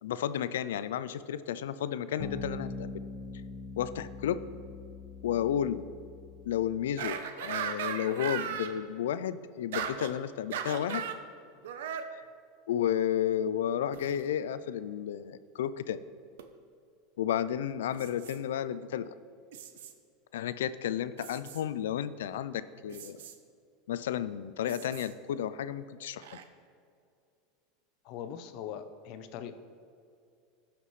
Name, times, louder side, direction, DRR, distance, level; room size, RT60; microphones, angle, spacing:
voice 1, 0.0-3.0 3.8-4.4 5.2-5.8 6.4-11.0 12.7-16.0 17.2-19.1 20.3-23.2 23.9-26.3, left 10 dB, 90° left, 14 dB, 0.4 m, -32 dB
sound 1, 2.2-7.0, left 3 dB, 15° left, 1.4 m, -42 dB
sound 2, 7.0-8.7 9.7-10.1 10.5-11.2 11.6-12.1 13.9-14.2 16.4-16.5 17.9-18.4 19.5-19.9 21.2-21.6 22.9-23.3 24.6-25.1 26.2-26.4, right 8 dB, 80° right, 0.7 m, -37 dB
voice 2, 28.0-29.5, left 9 dB, 60° left, 10 dB, 0.7 m, -41 dB
15.5 x 5.8 x 3.2 m, 2.4 s
supercardioid pair, 115°, 0 cm